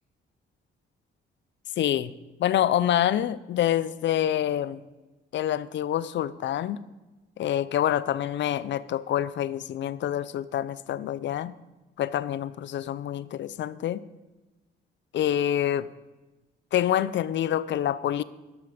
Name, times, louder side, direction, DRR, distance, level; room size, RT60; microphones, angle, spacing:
voice 1, 1.8-2.1 2.4-4.8 5.3-6.8 7.4-11.6 12.0-14.0 15.1-15.9 16.7-18.2, left 11 dB, 65° left, 17 dB, 0.6 m, -26 dB
12.5 x 12.0 x 5.1 m, 1.1 s
cardioid pair, 90°, 20 cm